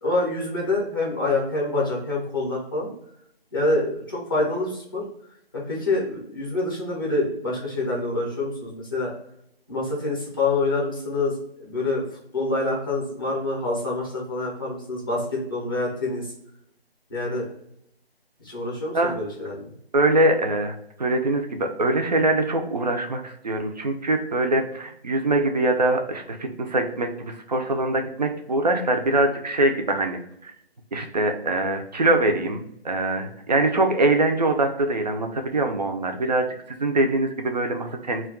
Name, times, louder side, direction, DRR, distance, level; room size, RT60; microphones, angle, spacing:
voice 1, 0.0-2.9 3.5-5.0 5.5-9.1 9.7-12.0 12.3-16.3 17.1-17.5 18.4-19.6, left 2 dB, 20° left, -3 dB, 0.5 m, -26 dB
voice 2, 19.9-30.5 30.9-38.3, right 2 dB, 45° right, 4 dB, 0.4 m, -23 dB
2.2 x 2.2 x 3.6 m, 0.75 s
figure-of-eight pair, 155°, 31 cm